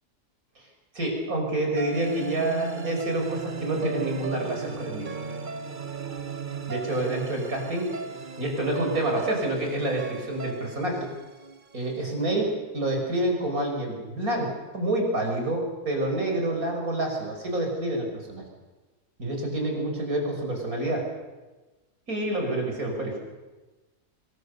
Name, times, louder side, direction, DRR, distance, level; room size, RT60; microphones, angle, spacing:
voice 1, 0.9-5.1 6.7-7.9 8.4-11.1 11.7-18.4 19.2-21.1 22.1-23.2, right 1 dB, 60° right, 2 dB, 6.2 m, -28 dB
sound 1, 1.8-12.0, right 5 dB, 35° right, 1.1 m, -36 dB
25.5 x 22.5 x 6.8 m, 1.2 s
omnidirectional pair, 1.7 m